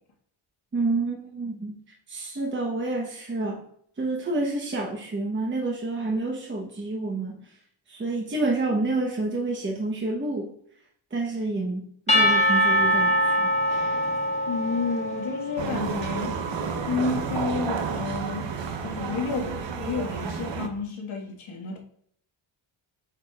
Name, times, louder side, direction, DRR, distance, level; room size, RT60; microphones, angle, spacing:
voice 1, 0.7-1.8 2.1-3.7 4.0-7.4 7.9-10.5 11.1-13.5, right 2 dB, 25° right, 0.9 m, -28 dB
Percussion / Church bell, 12.1-15.9, equal, 15° left, 1.4 m, -23 dB
voice 2, 14.5-16.4 16.9-21.8, left 4 dB, 70° left, 1.7 m, -30 dB
sound 1, 15.6-20.7, right 5 dB, 60° right, 1.0 m, -31 dB
8.3 x 4.9 x 2.4 m
wide cardioid pair, 125°, 50 cm